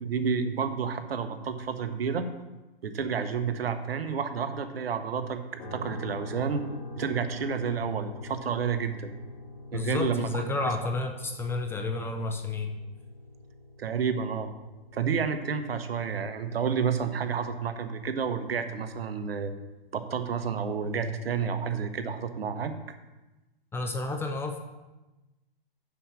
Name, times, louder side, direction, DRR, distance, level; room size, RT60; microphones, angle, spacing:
voice 1, 0.0-2.3 2.8-6.6 7.0-9.1 9.7-10.3 13.8-14.5 14.9-19.5 19.9-22.7, right 6 dB, 75° right, 8 dB, 1.1 m, -30 dB
sound 1, 5.6-19.6, left 2 dB, 50° left, 2.9 m, -45 dB
voice 2, 9.7-12.7 23.7-24.6, left 3 dB, 10° left, 4 dB, 0.4 m, -31 dB
7.0 x 6.2 x 7.0 m, 1.1 s
hypercardioid pair, 125°, 30 cm